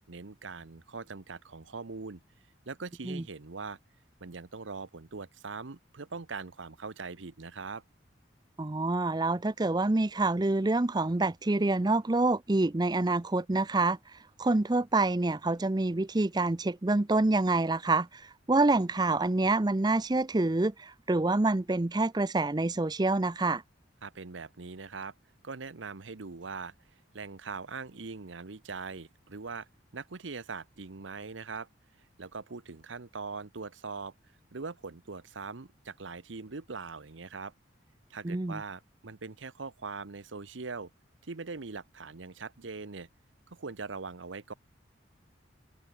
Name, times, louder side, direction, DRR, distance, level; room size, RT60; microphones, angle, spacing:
voice 1, 0.1-2.2 2.7-3.8 4.2-7.8 24.0-25.1 25.4-26.7 27.1-29.7 29.9-31.7 32.2-34.1 34.5-37.5 38.1-40.9 41.2-43.1 43.5-44.5, right 4 dB, 80° right, 1.0 m, -41 dB
voice 2, 8.6-23.6 38.2-38.6, right 2 dB, 20° right, 0.6 m, -27 dB
head